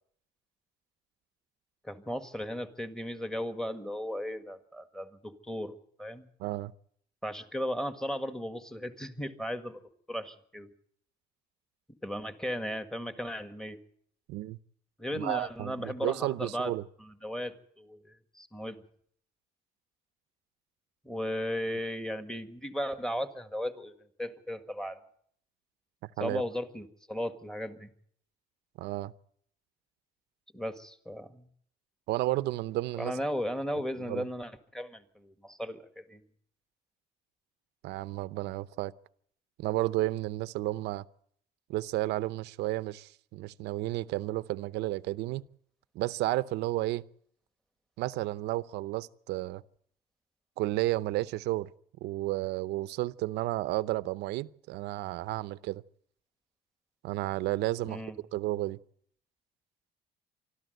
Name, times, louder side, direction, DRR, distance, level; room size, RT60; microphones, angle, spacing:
voice 1, 1.8-6.3 7.2-10.7 12.0-13.8 15.0-16.7 17.0-18.8 21.0-25.0 26.2-27.9 30.5-31.5 33.0-36.2 57.9-58.2, equal, 5° left, 1.7 m, -36 dB
voice 2, 6.4-6.7 14.3-14.6 15.2-16.8 26.0-26.4 28.8-29.1 32.1-33.1 34.1-34.2 37.8-38.9 39.6-41.0 41.7-45.4 45.9-47.0 48.0-49.6 50.6-51.7 52.0-55.8 57.0-58.0 58.3-58.8, right 17 dB, 85° right, 0.7 m, -32 dB
24.5 x 13.0 x 7.9 m
cardioid pair, 110°, 17 cm